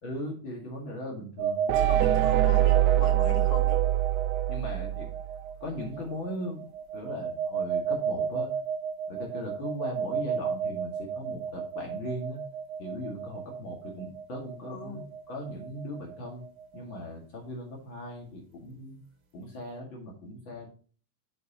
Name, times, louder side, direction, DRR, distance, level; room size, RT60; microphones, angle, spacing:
voice 1, 0.0-1.9 4.5-5.1 5.6-6.6 6.9-8.5 9.1-12.4 12.8-15.0 15.3-16.4 16.7-19.0 19.3-20.7, left 1 dB, 45° left, 0 dB, 1.7 m, -38 dB
sound 1, 1.4-17.0, right 6 dB, 70° right, 4.4 m, -34 dB
sound 2, 1.7-5.4, right 15 dB, 90° right, 2.9 m, -24 dB
voice 2, 1.8-3.8 14.7-15.1, left 7 dB, 65° left, 2 dB, 3.7 m, -41 dB
7.7 x 7.6 x 3.0 m, 0.41 s
omnidirectional pair, 5.1 m